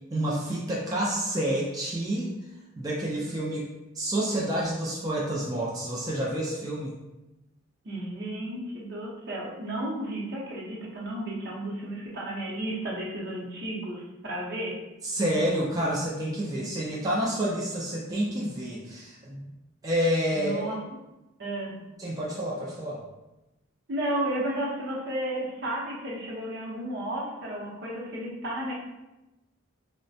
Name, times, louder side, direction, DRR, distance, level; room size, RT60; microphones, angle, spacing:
voice 1, 0.1-2.3 2.8-3.7 3.9-6.9 15.0-19.5 19.8-20.7 22.0-23.0, right 1 dB, 20° right, -5 dB, 0.4 m, -29 dB
voice 2, 7.8-14.8 20.3-20.8 21.4-21.7 23.9-28.7, right 1 dB, 55° right, -4 dB, 0.7 m, -33 dB
4.0 x 2.1 x 2.6 m, 1.0 s
head